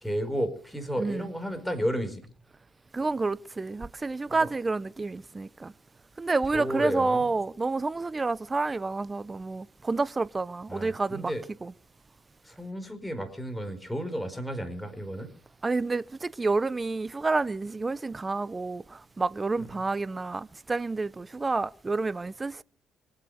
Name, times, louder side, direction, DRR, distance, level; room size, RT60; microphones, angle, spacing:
voice 1, 0.0-2.3 4.4-4.5 6.5-7.3 10.7-11.4 12.4-15.3, equal, 5° left, 4.7 m, -32 dB
voice 2, 1.0-1.3 2.9-5.7 6.2-11.3 11.6-11.7 15.6-22.6, right 3 dB, 25° right, 0.8 m, -29 dB
25.0 x 8.3 x 6.6 m
supercardioid pair, 70°, 0 cm